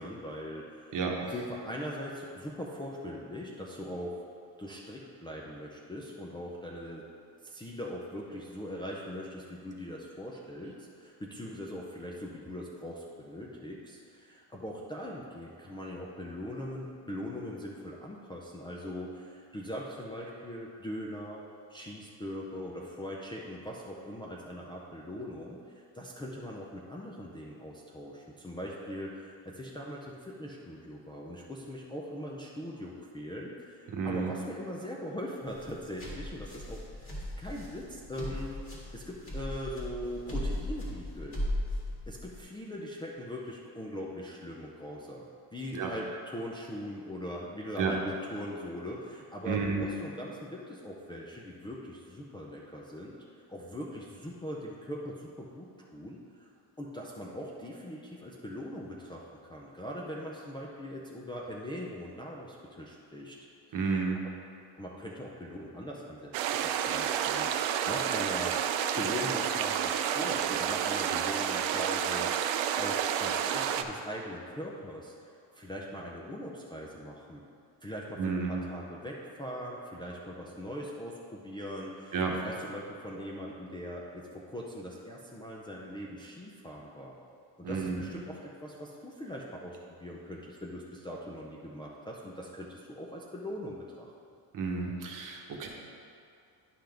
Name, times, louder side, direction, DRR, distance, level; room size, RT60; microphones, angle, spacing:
voice 1, 0.0-1.0 1.3-4.2 4.6-7.0 7.4-21.4 21.7-38.6 38.9-41.4 42.1-45.2 45.5-56.5 56.8-63.4 63.7-64.0 64.8-68.6 69.0-77.4 77.8-82.2 82.4-87.2 87.6-94.1, equal, 10° left, -5 dB, 0.5 m, -41 dB
voice 2, 33.9-34.3 45.7-45.9 47.8-47.9 49.4-49.8 63.7-64.2 78.2-78.6 82.1-82.3 87.6-88.1 94.5-95.7, right 5 dB, 45° right, 0 dB, 1.1 m, -31 dB
sound 1, 35.5-42.4, left 1 dB, 30° left, 1.9 m, -37 dB
sound 2, 66.3-73.8, right 9 dB, 85° right, 0.6 m, -30 dB
10.0 x 5.7 x 3.5 m, 2.4 s
cardioid pair, 140°, 45 cm